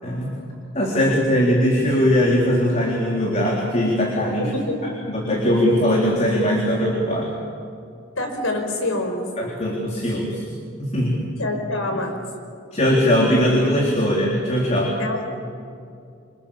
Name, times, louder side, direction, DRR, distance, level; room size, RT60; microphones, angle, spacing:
voice 1, 0.0-0.3 0.7-4.5 4.8-7.3 9.4-10.4 10.8-11.3 12.7-15.0, equal, 35° left, -2 dB, 3.9 m, -20 dB
voice 2, 4.4-4.9 8.2-9.3 11.4-12.2 15.0-15.2 15.6-15.7, left 2 dB, 85° left, 4 dB, 5.2 m, -26 dB
29.0 x 26.0 x 7.1 m, 2.4 s
head